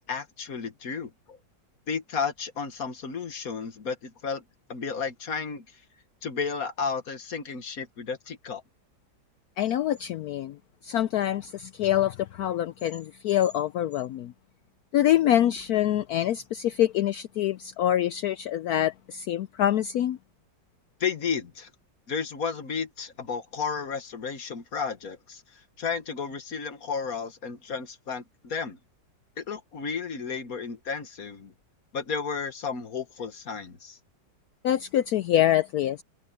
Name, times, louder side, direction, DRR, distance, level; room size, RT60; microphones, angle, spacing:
voice 1, 0.1-1.4 1.9-4.4 4.7-5.7 6.2-8.6 21.0-21.7 22.1-28.8 29.4-31.5 31.9-34.0, left 5 dB, 50° left, 1.8 m, -33 dB
voice 2, 9.6-10.6 10.8-14.3 14.9-20.2 34.6-36.0, left 12 dB, 70° left, 0.9 m, -25 dB
omnidirectional pair, 2.0 m